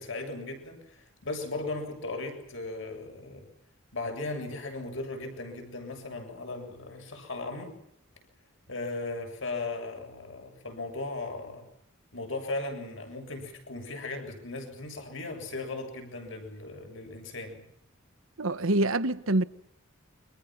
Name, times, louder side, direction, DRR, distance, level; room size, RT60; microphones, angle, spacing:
voice 1, 0.0-3.4 3.9-7.7 8.7-11.6 12.1-17.7, left 2 dB, 65° left, 7.4 m, -37 dB
voice 2, 18.4-19.5, right 2 dB, 75° right, 1.3 m, -25 dB
29.5 x 24.5 x 6.1 m
head